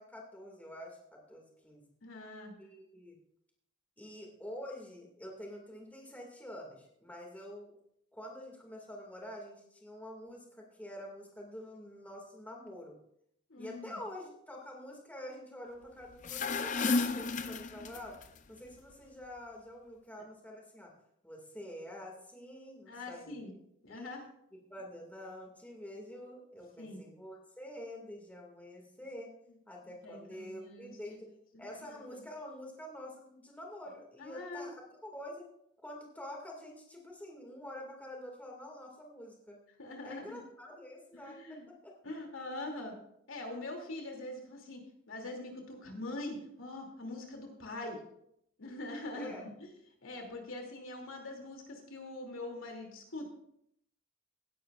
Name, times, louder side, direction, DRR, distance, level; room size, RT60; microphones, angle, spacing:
voice 1, 0.0-1.8 2.6-3.2 4.0-7.7 8.1-13.0 13.6-18.2 18.5-20.9 21.2-23.3 23.9-24.2 24.7-29.3 29.7-31.3 31.6-35.5 35.8-39.6 40.0-41.9 49.1-49.4, left 1 dB, 10° left, -1 dB, 2.1 m, -47 dB
voice 2, 2.0-2.5 13.5-14.0 22.9-23.5 23.8-24.2 26.8-27.0 30.0-31.2 31.5-32.2 34.2-34.8 39.8-40.4 41.1-41.7 42.0-43.0 43.3-48.0 48.6-49.7 50.0-53.2, left 2 dB, 80° left, 1 dB, 2.7 m, -43 dB
sound 1, 16.1-18.3, left 3 dB, 40° left, 0.6 m, -32 dB
16.5 x 11.0 x 2.5 m, 0.73 s
head